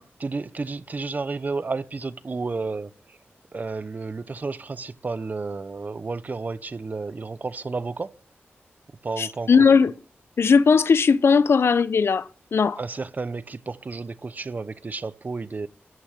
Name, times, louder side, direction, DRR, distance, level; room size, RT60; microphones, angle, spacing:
voice 1, 0.2-3.2 3.5-8.2 9.0-9.7 12.8-15.7, right 3 dB, 40° right, 0.7 m, -32 dB
voice 2, 9.2-9.9 10.4-12.8, left 5 dB, 75° left, 0.7 m, -18 dB
14.0 x 5.9 x 8.3 m
wide cardioid pair, 110°, 4 cm